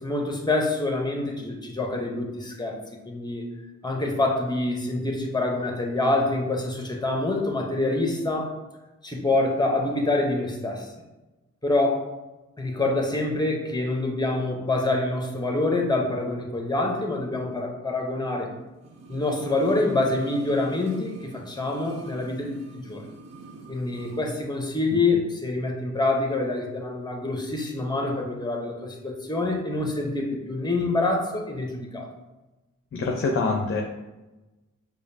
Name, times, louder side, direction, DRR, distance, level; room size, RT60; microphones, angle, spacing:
voice 1, 0.0-2.8 3.0-3.4 3.8-8.5 9.0-10.9 11.6-12.0 12.6-18.5 19.1-23.0 23.7-32.1, left 2 dB, 15° left, 1 dB, 0.9 m, -26 dB
sound 1, 18.8-24.3 24.5-24.6, right 3 dB, 50° right, 0.8 m, -45 dB
voice 2, 32.9-33.8, left 3 dB, 40° left, 1 dB, 0.6 m, -25 dB
4.9 x 2.4 x 2.7 m, 1.1 s
supercardioid pair, 45°, 33 cm